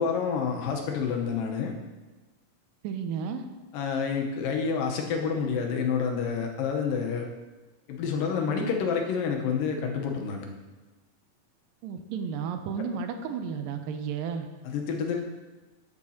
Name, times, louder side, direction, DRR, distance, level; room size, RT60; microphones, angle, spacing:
voice 1, 0.0-1.7 3.7-7.3 7.9-10.5 14.6-15.2, left 6 dB, 85° left, 2 dB, 2.6 m, -28 dB
voice 2, 2.8-3.5 11.8-14.5, right 6 dB, 80° right, 7 dB, 2.4 m, -33 dB
13.0 x 6.7 x 2.8 m, 1.2 s
omnidirectional pair, 3.9 m